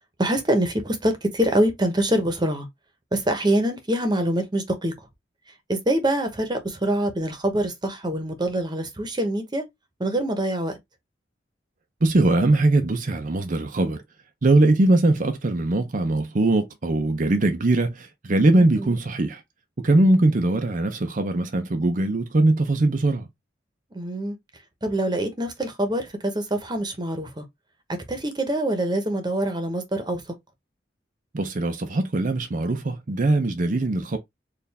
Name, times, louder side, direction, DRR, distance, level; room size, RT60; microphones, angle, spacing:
voice 1, 0.2-2.7 3.1-4.9 5.7-9.6 10.0-10.8 18.6-18.9 23.9-24.4 24.8-27.4 28.1-30.2, right 1 dB, 25° right, 1.0 m, -25 dB
voice 2, 12.0-14.0 14.4-19.4 19.8-23.3 31.3-34.2, right 2 dB, 45° right, 0.6 m, -21 dB
4.5 x 2.6 x 3.4 m
head